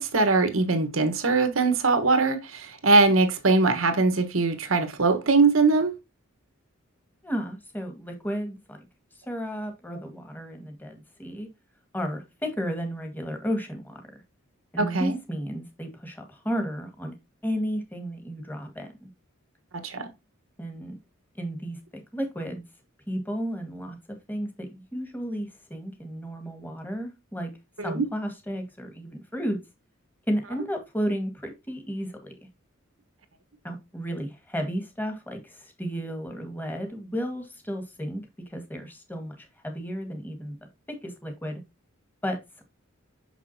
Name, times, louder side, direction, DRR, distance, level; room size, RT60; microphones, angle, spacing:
voice 1, 0.0-5.9 14.8-15.2 19.8-20.1 27.8-28.1, right 3 dB, 85° right, 1.4 m, -22 dB
voice 2, 7.2-8.8 9.3-11.5 11.9-14.0 14.7-17.1 17.4-19.1 20.6-21.0 21.4-22.6 23.1-24.0 24.3-27.5 27.8-29.6 30.3-32.3 33.6-40.6 40.9-41.6 42.2-42.6, equal, 10° left, 1.8 m, -33 dB
6.6 x 6.1 x 2.8 m
head